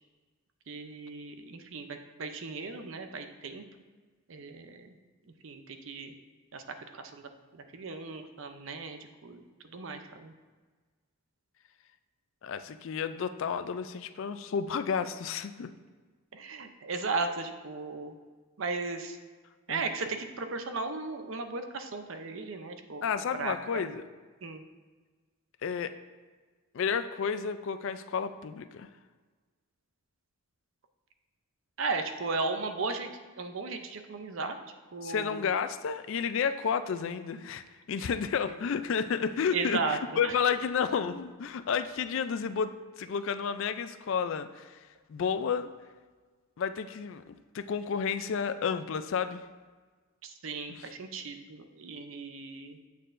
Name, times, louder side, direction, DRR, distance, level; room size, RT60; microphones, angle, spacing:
voice 1, 0.7-3.6 4.3-5.0 5.4-6.1 6.5-10.3 16.3-18.1 18.6-19.2 19.7-23.0 23.3-23.9 24.4-24.6 31.8-33.1 33.4-34.6 34.9-35.5 38.0-38.1 39.5-40.0 40.2-40.3 50.2-52.8, right 4 dB, 60° right, 7 dB, 0.6 m, -36 dB
voice 2, 12.4-15.7 19.7-19.8 23.0-24.0 25.6-25.9 26.7-28.9 35.0-45.7 46.6-49.5, left 6 dB, 60° left, 11 dB, 0.3 m, -31 dB
8.3 x 6.5 x 2.5 m, 1.4 s
head